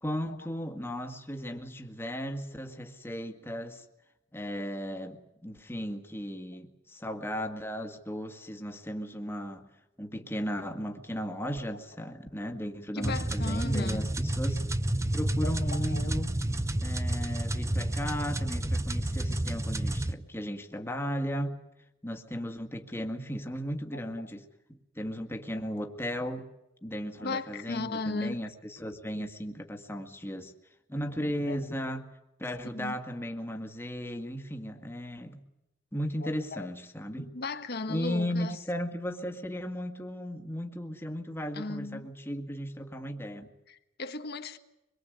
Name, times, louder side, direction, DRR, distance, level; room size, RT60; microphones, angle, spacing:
voice 1, 0.0-3.8 4.3-9.7 10.0-14.6 15.1-16.3 16.8-21.6 22.0-26.5 26.8-30.5 30.9-32.1 32.4-35.4 35.9-37.3 37.9-43.5, equal, 10° left, 2.0 m, -36 dB
voice 2, 12.9-14.1 15.4-16.2 23.9-24.0 27.2-28.4 31.5-31.6 32.7-33.0 36.2-36.7 37.2-38.6 41.5-42.1 43.7-44.6, left 3 dB, 55° left, 1.5 m, -36 dB
sound 1, 13.0-20.1, right 1 dB, 15° right, 0.8 m, -30 dB
24.5 x 23.0 x 8.1 m
head